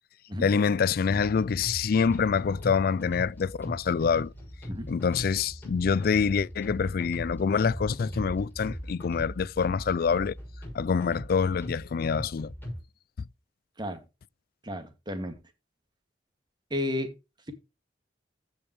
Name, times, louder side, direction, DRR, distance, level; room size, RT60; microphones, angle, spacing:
voice 1, 0.4-4.3 4.9-10.3 10.7-12.5, left 6 dB, 55° left, 0.4 m, -26 dB
sound 1, 1.1-12.8, equal, 10° left, 6.1 m, -40 dB
voice 2, 14.6-15.3 16.7-17.1, left 1 dB, 25° right, 2.0 m, -32 dB
15.5 x 5.3 x 3.1 m
head